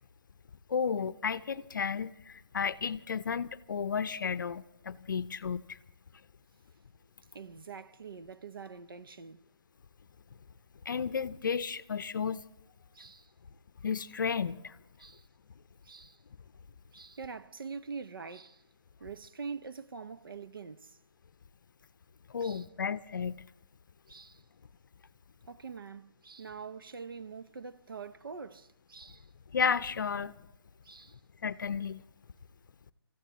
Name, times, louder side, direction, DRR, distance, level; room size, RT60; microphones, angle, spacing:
voice 1, 0.7-5.6 10.9-12.4 13.8-14.7 22.3-23.4 29.5-30.3 31.4-32.0, left 6 dB, 50° left, 0.6 m, -33 dB
voice 2, 7.3-9.4 12.9-13.3 15.0-15.3 15.8-16.2 16.9-18.6 19.0-21.0 22.4-22.7 24.1-24.4 25.5-29.3 30.8-31.2, right 5 dB, 60° right, 0.7 m, -44 dB
29.5 x 15.0 x 3.0 m
figure-of-eight pair, 145°, 13 cm